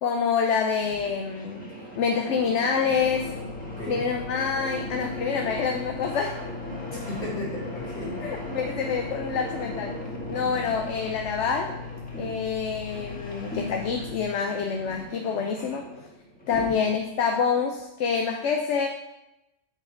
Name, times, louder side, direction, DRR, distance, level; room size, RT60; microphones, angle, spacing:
voice 1, 0.0-1.7 2.0-3.3 3.9-6.3 8.2-10.0 10.3-11.7 12.2-15.9 16.5-18.9, left 6 dB, 70° left, 3 dB, 0.9 m, -27 dB
sound 1, 0.7-17.1, equal, 5° left, 1.6 m, -39 dB
sound 2, 2.9-14.2, left 6 dB, 25° left, 1.6 m, -40 dB
voice 2, 6.9-8.2 16.6-16.7, left 1 dB, 45° left, -4 dB, 2.5 m, -35 dB
9.0 x 4.7 x 4.4 m, 0.93 s
omnidirectional pair, 1.3 m